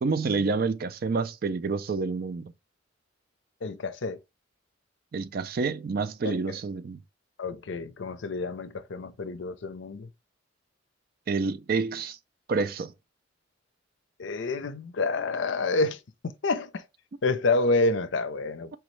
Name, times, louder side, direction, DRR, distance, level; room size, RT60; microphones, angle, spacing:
voice 1, 0.0-2.5 5.1-7.0 11.3-12.2 12.5-12.9, right 4 dB, 50° right, 0.4 m, -28 dB
voice 2, 3.6-4.2 6.2-6.6 7.4-10.1 14.2-16.0 16.4-16.8 17.2-18.8, left 3 dB, 70° left, 0.5 m, -28 dB
4.7 x 3.0 x 3.1 m
head